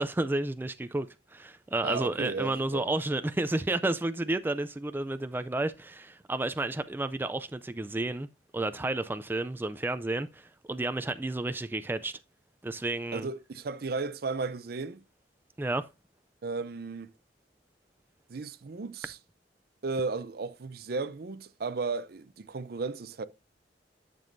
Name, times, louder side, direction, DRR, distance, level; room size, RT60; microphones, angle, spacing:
voice 1, 0.0-8.3 8.5-12.2 12.6-13.3 15.6-15.9, right 2 dB, 10° right, 0.3 m, -31 dB
voice 2, 1.8-2.9 13.1-15.0 16.4-17.1 18.3-19.2 19.8-23.2, right 4 dB, 60° right, 0.5 m, -34 dB
11.0 x 6.9 x 2.6 m
head